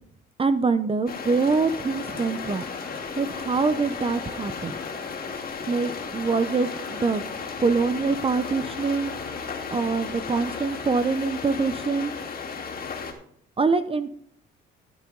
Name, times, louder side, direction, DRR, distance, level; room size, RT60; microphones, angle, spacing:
voice 1, 0.4-2.7 3.1-4.8 5.7-7.2 7.6-9.1 9.7-12.1 13.6-14.1, right 4 dB, 30° right, 11 dB, 0.7 m, -24 dB
sound 1, 1.1-13.1, left 5 dB, 50° left, 2.4 m, -34 dB
sound 2, 1.2-11.2, equal, 5° left, 3.3 m, -48 dB
13.0 x 9.2 x 3.9 m, 0.65 s
cardioid pair, 90°, 20 cm